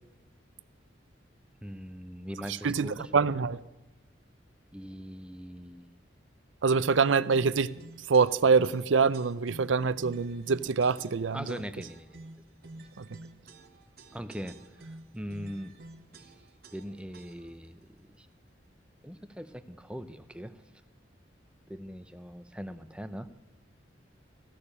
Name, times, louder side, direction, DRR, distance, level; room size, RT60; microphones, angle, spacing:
voice 1, 1.6-3.1 4.7-6.0 11.3-12.2 14.1-15.7 16.2-16.3 16.7-18.3 19.0-20.6 21.7-23.3, equal, 5° right, 0.6 m, -41 dB
voice 2, 2.5-3.6 6.6-7.7 8.1-11.6 13.0-13.1, right 5 dB, 80° right, 0.6 m, -25 dB
sound 1, 6.8-17.7, right 2 dB, 50° right, 1.1 m, -51 dB
15.0 x 6.9 x 9.9 m
head